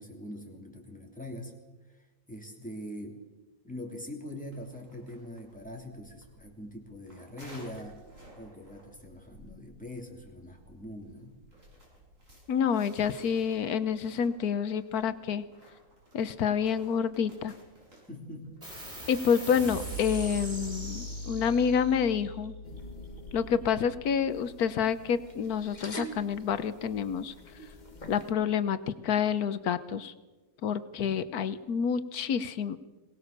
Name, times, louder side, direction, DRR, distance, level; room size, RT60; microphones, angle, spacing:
voice 1, 0.0-1.5 1.9-3.2 3.6-8.0 8.4-11.4 18.1-18.6, left 1 dB, 5° left, 1 dB, 3.2 m, -43 dB
sound 1, 4.4-18.6, right 1 dB, 60° right, 6.8 m, -56 dB
voice 2, 12.5-15.4 16.1-17.5 19.1-22.5 23.3-27.3 28.1-28.8 29.0-30.1 30.6-32.8, left 7 dB, 80° left, 13 dB, 1.4 m, -28 dB
sound 2, 18.6-25.5, equal, 45° right, 7.2 m, -41 dB
sound 3, 22.6-28.3, equal, 30° left, 1.8 m, -46 dB
22.0 x 19.0 x 6.8 m, 1.2 s
omnidirectional pair, 1.6 m